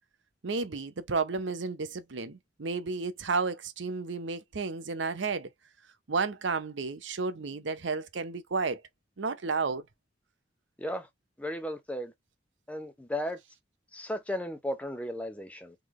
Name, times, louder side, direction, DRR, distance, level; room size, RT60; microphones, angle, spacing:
voice 1, 0.4-5.5 6.1-8.8 9.2-9.8, right 4 dB, 70° right, 0.7 m, -32 dB
voice 2, 11.4-12.1 12.7-13.4 13.9-15.7, left 1 dB, 5° left, 0.7 m, -35 dB
3.8 x 3.3 x 3.1 m
head